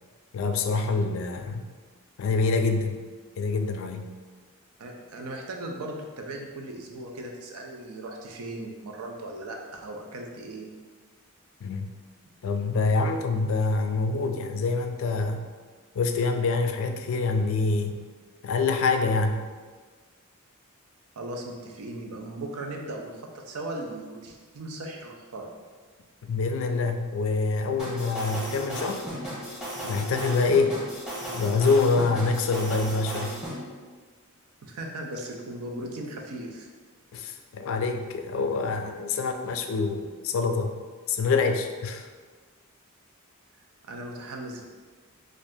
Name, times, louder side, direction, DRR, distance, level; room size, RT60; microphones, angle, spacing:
voice 1, 0.3-1.7 2.2-3.0 3.4-4.1 11.6-11.9 12.4-15.5 15.9-18.0 18.4-19.5 26.2-29.1 29.8-30.8 31.3-33.4 37.1-40.8 41.1-42.1, left 4 dB, 65° left, 6 dB, 0.3 m, -26 dB
voice 2, 4.8-10.7 21.2-25.5 34.6-36.7 43.8-44.6, right 1 dB, 85° right, 1 dB, 0.5 m, -37 dB
sound 1, 27.8-33.5, right 1 dB, 5° right, 0.8 m, -35 dB
2.6 x 2.4 x 3.4 m, 1.4 s
head